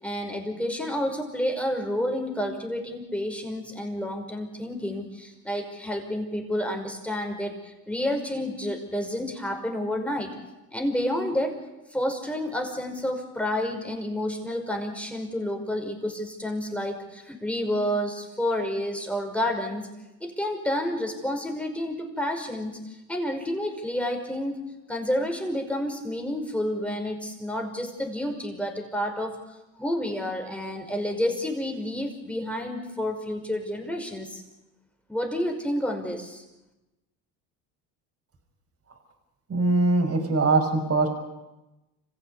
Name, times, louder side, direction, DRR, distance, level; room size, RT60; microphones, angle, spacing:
voice 1, 0.0-10.3 10.7-11.6 11.9-19.8 20.2-24.6 24.9-29.3 29.8-34.4 35.1-36.4, left 1 dB, 5° left, 3 dB, 5.6 m, -30 dB
voice 2, 39.5-41.1, right 3 dB, 35° right, 2 dB, 5.7 m, -22 dB
27.0 x 15.5 x 8.5 m, 1.0 s
supercardioid pair, 85°, 42 cm